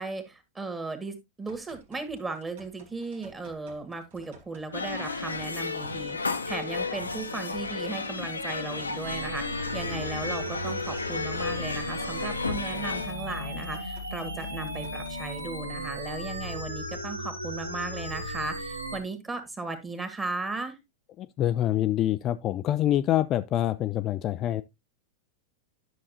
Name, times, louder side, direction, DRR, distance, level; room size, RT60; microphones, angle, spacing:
voice 1, 0.0-20.8, right 3 dB, 15° right, 1.8 m, -36 dB
sound 1, 1.5-15.5, right 3 dB, 55° right, 1.7 m, -55 dB
sound 2, 4.7-13.1, left 4 dB, 80° left, 0.8 m, -33 dB
sound 3, 9.0-19.0, equal, 85° right, 1.3 m, -36 dB
voice 2, 21.2-24.6, left 12 dB, 35° left, 0.4 m, -26 dB
10.5 x 6.4 x 2.7 m
figure-of-eight pair, 90°, 0 cm